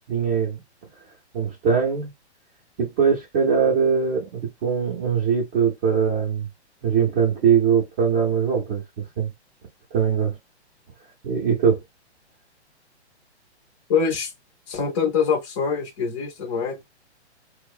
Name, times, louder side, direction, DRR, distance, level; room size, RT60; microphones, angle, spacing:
voice 1, 0.1-0.6 1.3-2.1 2.8-6.5 6.8-8.8 9.2-9.3 9.9-10.4 11.2-11.8, right 6 dB, 20° right, 0.5 m, -21 dB
voice 2, 13.9-14.3 14.7-16.8, left 6 dB, 25° left, 0.5 m, -24 dB
2.8 x 2.1 x 2.3 m
hypercardioid pair, 155°, 34 cm